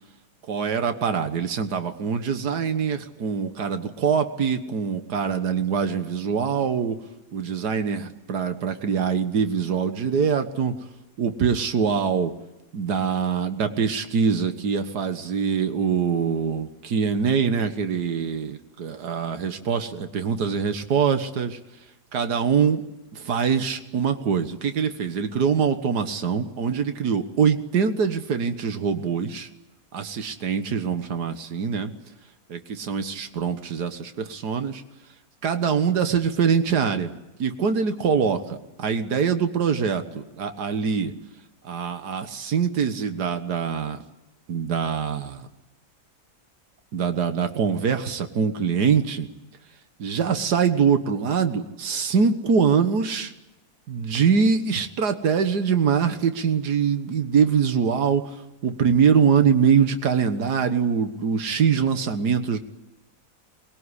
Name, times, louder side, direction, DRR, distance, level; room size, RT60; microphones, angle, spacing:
voice 1, 0.5-7.0 7.3-10.7 11.2-12.3 12.7-21.6 22.1-22.8 23.1-29.5 29.9-31.9 32.5-34.8 35.4-37.1 37.4-41.1 41.6-44.0 44.5-45.5 46.9-49.3 50.0-53.3 53.9-62.6, right 6 dB, 85° right, 8 dB, 1.9 m, -23 dB
23.0 x 21.0 x 9.9 m, 0.96 s
omnidirectional pair, 1.7 m